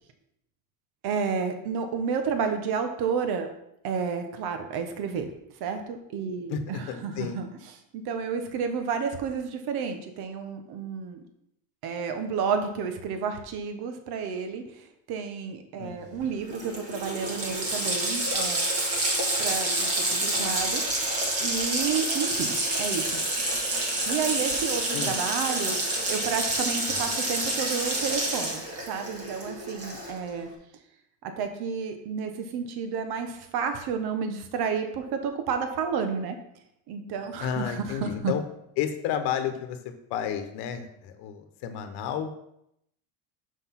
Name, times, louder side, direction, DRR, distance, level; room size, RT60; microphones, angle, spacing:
voice 1, 1.0-3.5 3.8-5.3 5.6-7.5 7.9-11.2 11.8-14.6 15.1-18.7 19.4-20.8 21.4-23.2 24.1-30.5 31.2-36.4 36.9-38.3, right 6 dB, 60° right, 6 dB, 1.2 m, -31 dB
voice 2, 6.5-7.4 15.8-16.2 24.9-25.2 27.0-27.1 37.4-38.4 38.8-42.3, left 8 dB, 65° left, 8 dB, 1.1 m, -32 dB
Water tap faucet, 16.2-16.3 16.5-30.3, right 1 dB, 35° right, 1.9 m, -28 dB
6.0 x 5.2 x 5.9 m, 0.78 s
cardioid pair, 145°, 42 cm